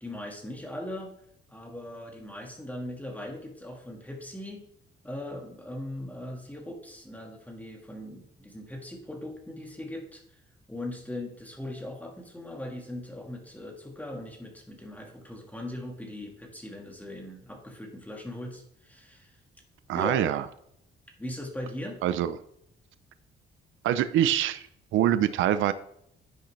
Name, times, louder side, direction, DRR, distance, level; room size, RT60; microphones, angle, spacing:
voice 1, 0.0-1.1 1.5-4.6 5.0-10.2 10.7-19.4 19.9-20.2 21.2-22.0, left 1 dB, 10° left, 1 dB, 1.7 m, -39 dB
voice 2, 19.9-20.4 22.0-22.3 23.8-24.6 24.9-25.7, right 11 dB, 80° right, 13 dB, 0.6 m, -24 dB
10.5 x 6.4 x 3.3 m, 0.73 s
cardioid pair, 90°, 20 cm